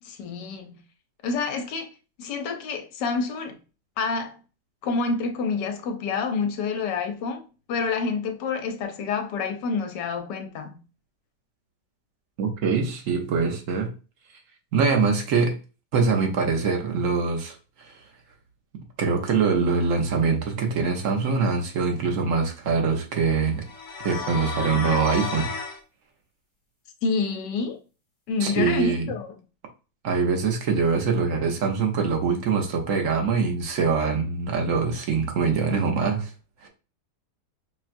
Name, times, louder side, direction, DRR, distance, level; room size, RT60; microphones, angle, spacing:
voice 1, 0.0-0.8 1.2-1.9 2.2-3.6 4.0-4.4 4.8-7.4 7.7-10.8 27.0-27.8 28.3-29.4, left 4 dB, 75° left, 1.3 m, -28 dB
voice 2, 12.4-13.9 14.7-15.6 15.9-17.6 17.9-18.0 19.0-23.6 24.0-25.5 28.4-29.1 30.0-36.3 36.6-36.7, right 5 dB, 55° right, 1.1 m, -23 dB
sound 1, 23.6-25.8, left 4 dB, 15° left, 0.7 m, -32 dB
5.6 x 2.3 x 2.5 m
omnidirectional pair, 1.9 m